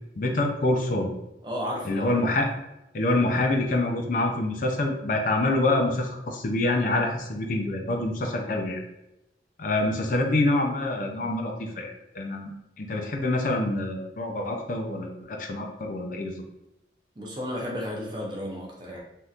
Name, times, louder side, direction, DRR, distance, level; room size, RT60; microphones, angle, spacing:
voice 1, 0.2-1.1 1.9-2.5 2.9-8.8 9.6-12.5 12.8-16.4, left 2 dB, 50° left, 3 dB, 0.4 m, -26 dB
voice 2, 1.4-2.1 17.2-19.0, equal, 25° right, -2 dB, 0.6 m, -33 dB
3.4 x 2.7 x 2.4 m, 0.91 s
head